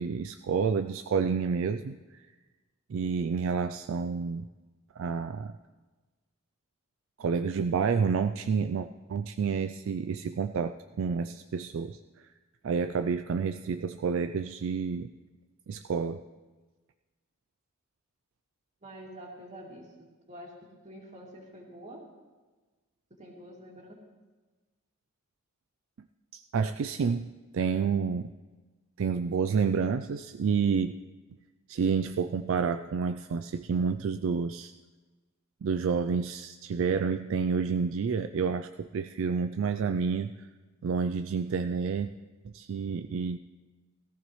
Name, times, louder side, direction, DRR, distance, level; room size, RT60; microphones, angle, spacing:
voice 1, 0.0-2.2 2.9-4.4 5.0-5.5 7.2-12.3 12.6-15.1 15.7-16.2 26.3-28.3 29.0-30.9 31.7-34.7 35.6-40.5 40.8-42.1 42.4-43.4, right 5 dB, 65° right, 9 dB, 0.3 m, -29 dB
voice 2, 18.8-22.1 23.1-24.0, equal, 30° right, -2 dB, 2.4 m, -47 dB
17.5 x 14.5 x 3.1 m, 1.3 s
head